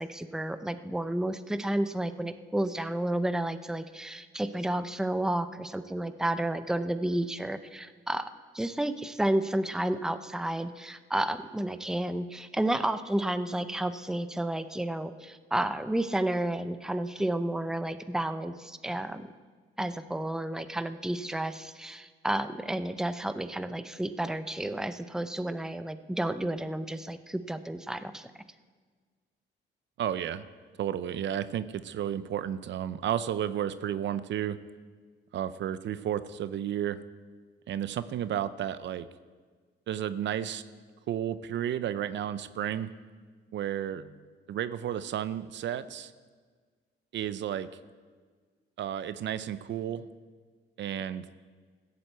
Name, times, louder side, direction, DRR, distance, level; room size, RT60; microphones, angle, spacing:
voice 1, 0.0-8.3 8.5-19.3 19.8-28.3, right 1 dB, 5° right, 11 dB, 0.6 m, -31 dB
voice 2, 30.0-30.5 30.8-34.6 35.3-37.0 37.7-39.1 39.9-40.6 41.1-42.9 43.5-44.2 44.5-46.1 47.1-47.7 48.8-50.1 50.8-51.3, right 10 dB, 65° right, 14 dB, 0.6 m, -32 dB
15.0 x 8.0 x 8.1 m, 1.5 s
cardioid pair, 90°, 20 cm